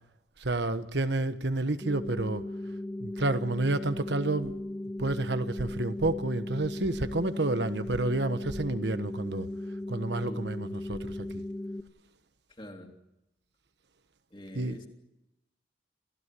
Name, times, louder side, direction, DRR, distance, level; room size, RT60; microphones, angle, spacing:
voice 1, 0.4-2.4 3.0-4.6 5.0-9.5 9.9-11.4 14.5-14.8, right 2 dB, 75° right, 1.3 m, -30 dB
sound 1, 1.8-11.8, left 1 dB, 10° left, 1.2 m, -37 dB
voice 2, 12.5-12.9 14.3-14.9, equal, 25° left, 3.2 m, -44 dB
28.0 x 16.0 x 8.4 m
head